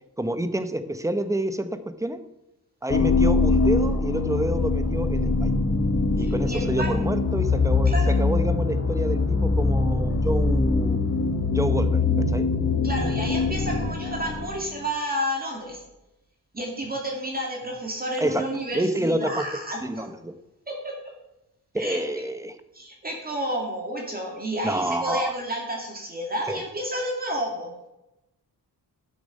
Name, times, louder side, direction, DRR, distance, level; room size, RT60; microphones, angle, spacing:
voice 1, 0.2-2.2 2.8-5.5 6.1-11.0 11.5-12.5 18.2-18.4 18.7-20.3 21.7-22.6 24.6-25.3 26.5-26.6, right 1 dB, 10° right, 10 dB, 0.8 m, -28 dB
sound 1, 2.9-14.8, left 3 dB, 40° left, 1.1 m, -23 dB
voice 2, 6.2-7.0 7.9-8.1 10.1-10.2 12.8-15.8 16.5-20.1 20.7-21.0 21.8-22.0 22.7-27.7, equal, 25° right, -1 dB, 2.3 m, -31 dB
12.0 x 7.1 x 5.2 m, 0.93 s
wide cardioid pair, 150°, 38 cm